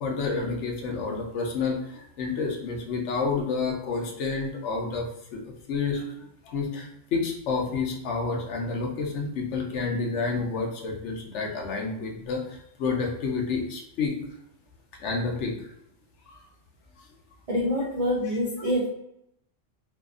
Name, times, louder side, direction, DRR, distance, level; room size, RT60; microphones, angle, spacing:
voice 1, 0.0-5.4 5.7-14.1 15.0-15.7 16.3-16.4, left 4 dB, 70° left, 1 dB, 0.9 m, -29 dB
voice 2, 17.5-18.9, equal, 70° right, -4 dB, 0.3 m, -26 dB
2.7 x 2.3 x 2.3 m, 0.77 s
omnidirectional pair, 1.3 m